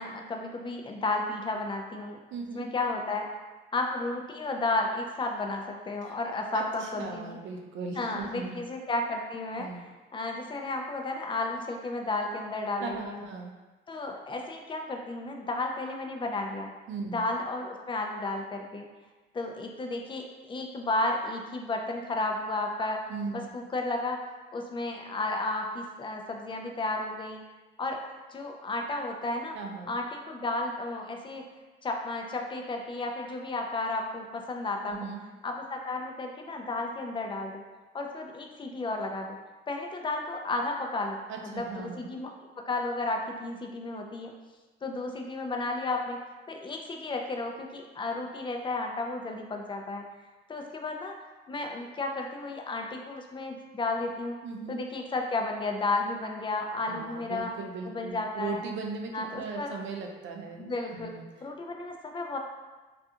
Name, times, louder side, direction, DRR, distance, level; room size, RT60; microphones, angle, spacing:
voice 1, 0.0-2.2 2.5-3.3 3.7-7.4 8.0-9.7 10.1-13.2 13.9-16.7 17.1-18.9 19.3-23.0 23.3-24.2 24.5-27.4 27.8-28.0 28.3-29.6 29.9-31.4 31.8-35.0 35.4-37.6 37.9-39.4 39.7-41.2 41.5-42.3 42.7-44.4 44.8-46.2 46.5-50.1 50.5-51.2 51.5-54.4 54.7-57.5 57.9-58.6 59.1-59.7 60.6-61.1 61.4-62.4, left 2 dB, 25° left, 2 dB, 0.4 m, -33 dB
voice 2, 2.3-2.7 6.0-6.2 6.5-8.6 9.6-9.9 12.8-13.5 16.9-17.2 23.1-23.5 29.5-29.9 34.8-35.2 41.3-42.1 54.4-54.8 56.9-61.3, right 4 dB, 70° right, 2 dB, 0.4 m, -38 dB
2.4 x 2.3 x 2.7 m, 1.2 s
cardioid pair, 90°, 20 cm